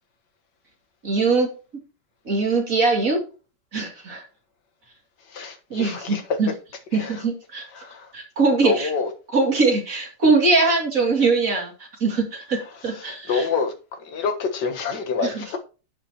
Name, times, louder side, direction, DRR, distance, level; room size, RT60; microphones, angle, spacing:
voice 1, 1.0-1.5 2.3-3.2 3.7-4.2 5.7-6.5 6.9-7.6 8.1-8.9 9.3-11.7 12.0-13.5 15.2-15.4, right 3 dB, 50° right, 3.1 m, -21 dB
voice 2, 5.3-6.2 7.0-7.1 7.8-8.0 8.6-9.1 13.3-13.7 14.1-15.6, left 5 dB, 75° left, 2.1 m, -26 dB
11.5 x 8.5 x 3.0 m
omnidirectional pair, 1.9 m